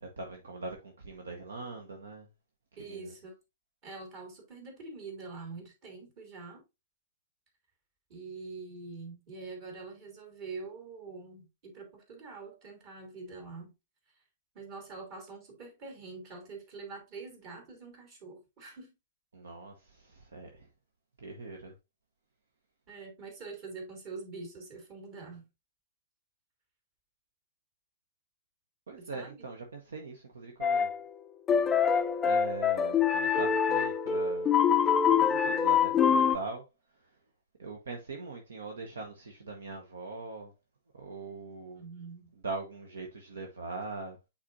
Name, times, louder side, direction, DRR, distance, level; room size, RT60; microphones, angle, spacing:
voice 1, 0.0-2.3 2.9-3.1 19.3-20.7 21.2-21.7 28.9-30.9 32.2-34.6 35.2-36.6 37.6-40.5 40.9-41.8 42.4-44.3, right 3 dB, 70° right, 1.1 m, -41 dB
voice 2, 2.8-3.3 3.8-6.6 8.1-13.7 14.5-18.9 22.9-25.5 29.0-29.5 41.7-42.3, right 4 dB, 40° right, 2.9 m, -45 dB
sound 1, 30.6-31.0 31.5-36.4, left 7 dB, 15° left, 0.4 m, -25 dB
8.6 x 4.2 x 2.6 m
figure-of-eight pair, 110°, 0 cm